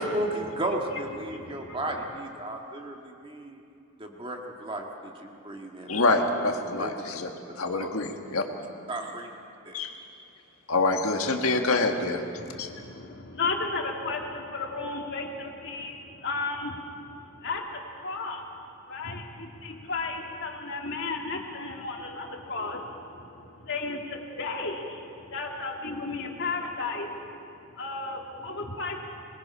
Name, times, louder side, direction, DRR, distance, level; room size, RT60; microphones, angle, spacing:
voice 1, 0.0-3.6 4.0-6.2 6.8-7.0 7.8-7.9 8.9-9.3 9.7-9.8, right 1 dB, 25° right, 1 dB, 1.8 m, -34 dB
voice 2, 1.2-2.1 12.4-18.5 18.8-29.0, left 3 dB, 55° left, 1 dB, 2.3 m, -34 dB
voice 3, 5.9-7.3 7.6-8.4 9.7-9.9 10.7-12.2 12.6-12.7, left 3 dB, 85° left, 3 dB, 1.6 m, -26 dB
24.0 x 20.5 x 5.6 m, 2.6 s
head